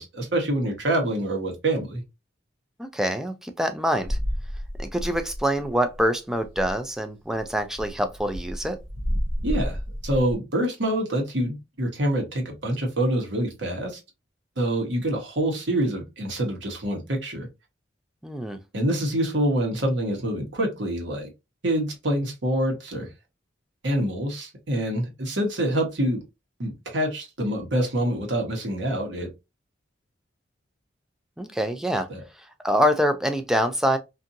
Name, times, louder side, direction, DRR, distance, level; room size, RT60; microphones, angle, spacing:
voice 1, 0.0-2.0 9.4-9.8 10.0-14.0 14.6-17.5 18.7-21.3 21.6-23.1 23.8-26.2 26.6-29.3 32.1-32.2, right 1 dB, 70° right, 1.1 m, -26 dB
voice 2, 2.8-4.2 4.8-8.8 18.2-18.6 31.4-32.1 32.6-34.0, equal, 5° right, 0.3 m, -25 dB
sound 1, 4.1-5.7 5.9-6.1 6.3-6.8 7.3-10.4, equal, 85° right, 0.8 m, -30 dB
2.7 x 2.6 x 2.5 m
head